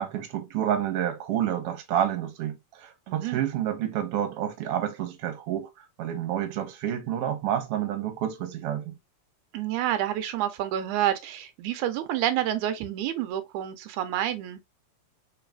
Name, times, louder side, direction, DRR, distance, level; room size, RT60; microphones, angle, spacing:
voice 1, 0.0-5.7 6.0-9.0, right 10 dB, 65° right, 1.7 m, -29 dB
voice 2, 3.1-3.4 9.5-14.6, right 12 dB, 85° right, 2.0 m, -28 dB
4.0 x 3.8 x 2.3 m
omnidirectional pair, 3.4 m